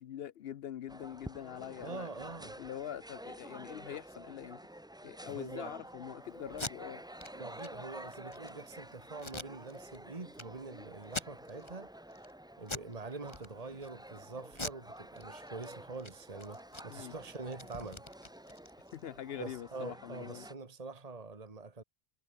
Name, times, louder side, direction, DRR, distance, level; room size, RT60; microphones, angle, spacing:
voice 1, 0.0-2.1 2.6-4.6 5.0-7.0 16.9-17.1 18.9-20.5, left 10 dB, 70° left, 0.9 m, -44 dB
sound 1, 0.9-20.5, right 1 dB, 5° right, 0.7 m, -50 dB
voice 2, 1.8-2.6 5.2-5.8 7.3-11.9 12.6-18.0 19.4-21.8, right 3 dB, 35° right, 1.9 m, -45 dB
Packing tape duct tape, 6.5-6.7 7.2-7.3 7.6-7.7 8.1-8.5 9.2-10.0 10.4-10.5 11.0-11.7 12.1-12.3 12.6-12.9 13.3-13.9 14.5-15.7 15.9-16.1 16.4-19.0, left 2 dB, 25° left, 2.4 m, -43 dB
omnidirectional pair, 1.1 m